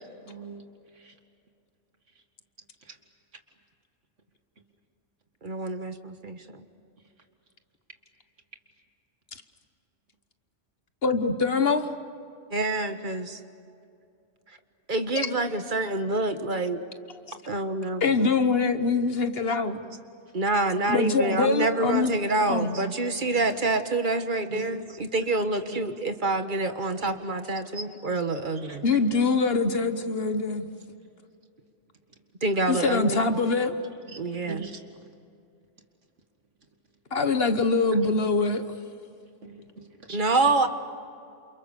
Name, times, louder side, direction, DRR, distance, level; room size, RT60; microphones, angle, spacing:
voice 1, 0.3-0.6 24.5-24.8 25.7-25.8 27.0-27.2 27.7-27.8 28.7-28.8 34.5-34.8 39.4-40.2 40.4-40.5, right 3 dB, 75° right, 5 dB, 2.4 m, -40 dB
voice 2, 5.4-6.6 12.5-13.4 14.9-16.8 17.5-18.0 20.3-28.8 32.4-33.2 34.2-34.7 40.1-40.7, right 2 dB, 40° right, 8 dB, 1.5 m, -27 dB
voice 3, 11.0-11.9 15.1-15.3 18.0-19.8 20.9-22.1 22.5-22.8 28.8-30.7 32.7-33.8 37.1-38.6, left 4 dB, 55° left, 9 dB, 1.4 m, -24 dB
28.5 x 28.5 x 6.9 m, 2.5 s
omnidirectional pair, 1.3 m